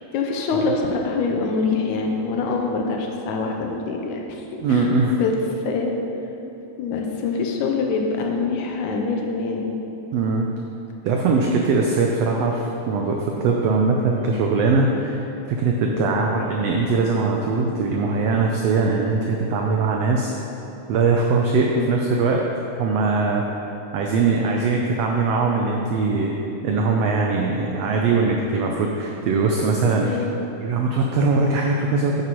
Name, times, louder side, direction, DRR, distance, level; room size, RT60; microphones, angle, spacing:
voice 1, 0.0-4.4 4.7-4.9 5.2-5.3 5.7-6.0 6.8-9.7 15.9-16.1 21.7-21.9 30.0-30.3, left 4 dB, 85° left, 1 dB, 2.2 m, -25 dB
voice 2, 4.6-5.2 10.1-10.5 11.0-15.2 15.5-20.3 20.9-22.5 22.8-23.4 23.9-26.3 26.6-30.1 30.6-32.2, right 4 dB, 85° right, 0 dB, 1.4 m, -21 dB
9.2 x 8.6 x 3.0 m, 2.9 s
omnidirectional pair, 3.5 m